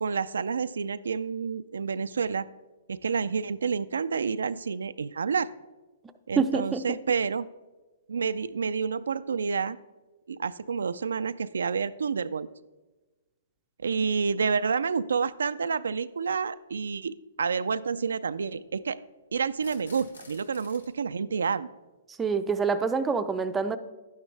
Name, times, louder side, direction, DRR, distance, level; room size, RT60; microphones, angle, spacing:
voice 1, 0.0-2.5 2.9-5.5 6.3-7.5 8.1-9.8 10.3-12.5 13.8-19.0 19.3-21.7, right 5 dB, 85° right, 13 dB, 0.3 m, -29 dB
voice 2, 6.4-6.8 22.1-23.8, right 5 dB, 15° right, 9 dB, 0.5 m, -26 dB
sound 1, 15.2-15.3 16.7-16.9 19.5-20.9, left 3 dB, 85° left, 1.8 m, -50 dB
11.5 x 9.7 x 3.3 m, 1.2 s
hypercardioid pair, 135°, 0 cm